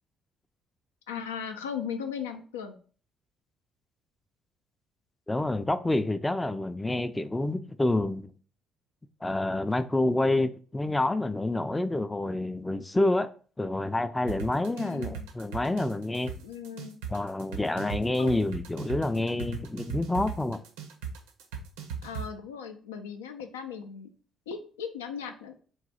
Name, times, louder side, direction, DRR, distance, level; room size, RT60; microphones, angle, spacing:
voice 1, 1.1-2.8 14.7-15.3 16.4-17.0 18.2-18.5 22.0-24.1 24.5-25.6, left 7 dB, 85° left, 0.4 m, -37 dB
voice 2, 5.3-8.3 9.2-13.3 13.6-16.3 17.1-20.6, left 2 dB, 15° left, 0.4 m, -28 dB
sound 1, 14.3-22.2, right 8 dB, 80° right, 0.5 m, -37 dB
3.9 x 2.3 x 4.1 m
hypercardioid pair, 45°, 0 cm